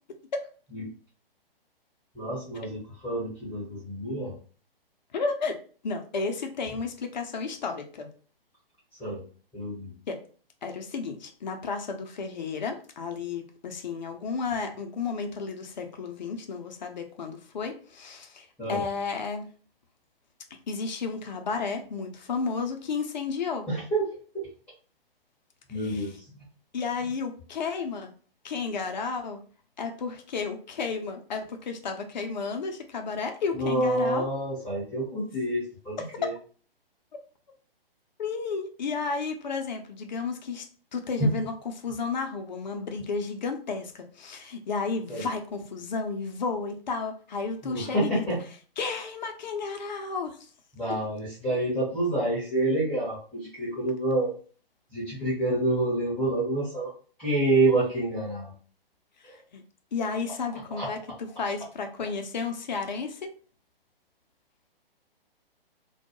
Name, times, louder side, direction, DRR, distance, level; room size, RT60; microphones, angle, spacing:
voice 1, 2.1-4.4 9.0-9.2 9.5-9.9 18.6-18.9 23.7-24.5 25.7-26.3 33.5-36.3 41.2-41.3 45.1-45.3 47.6-48.4 50.7-54.3 54.9-56.9 57.2-58.5 59.3-59.4 60.8-60.9, right 2 dB, 5° left, -10 dB, 0.7 m, -28 dB
voice 2, 5.1-5.5 5.8-8.1 10.1-10.2 10.6-19.5 20.7-23.7 25.8-26.0 26.7-28.1 28.4-29.4 29.8-34.3 38.2-40.7 40.9-41.5 41.8-48.2 48.8-50.4 59.5-59.6 59.9-63.3, left 4 dB, 50° left, 5 dB, 0.5 m, -32 dB
2.2 x 2.1 x 2.8 m, 0.41 s
figure-of-eight pair, 125°, 30 cm